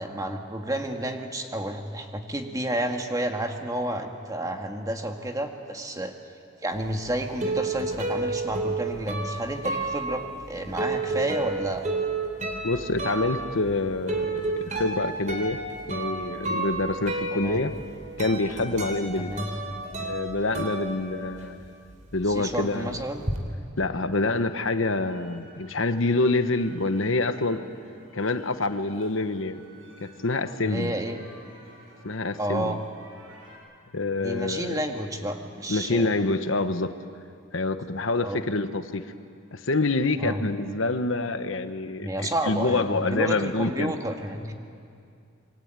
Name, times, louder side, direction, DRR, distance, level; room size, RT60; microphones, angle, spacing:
voice 1, 0.0-6.1 6.6-11.8 17.3-17.6 19.2-19.5 22.3-23.2 30.6-31.2 32.4-32.8 34.2-36.1 38.2-38.4 40.2-40.4 42.0-44.5, right 1 dB, 15° right, 4 dB, 1.9 m, -30 dB
sound 1, 6.8-21.6 21.9-23.4, right 3 dB, 40° right, 3.4 m, -31 dB
voice 2, 12.6-15.6 15.9-17.7 18.2-19.3 20.0-21.6 22.1-23.0 23.8-27.6 28.1-29.6 30.0-31.0 32.0-32.8 33.9-34.8 35.7-36.9 37.5-39.1 39.5-43.9, left 2 dB, 70° left, 9 dB, 1.1 m, -26 dB
sound 2, 25.0-33.5, equal, 80° right, 7.9 m, -53 dB
27.0 x 23.5 x 9.0 m, 2.4 s
head